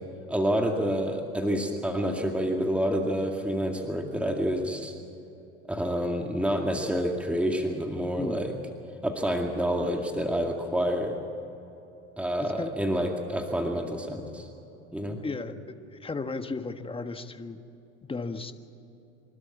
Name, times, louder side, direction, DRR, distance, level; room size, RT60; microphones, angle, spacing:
voice 1, 0.3-4.9 5.7-8.5 9.0-11.1 12.2-14.5 14.9-15.2, equal, 5° right, 2 dB, 2.2 m, -28 dB
voice 2, 12.4-12.7 15.2-17.6 18.0-18.5, left 3 dB, 15° left, 8 dB, 1.4 m, -35 dB
25.0 x 12.5 x 8.7 m, 3.0 s
hypercardioid pair, 85°, 36 cm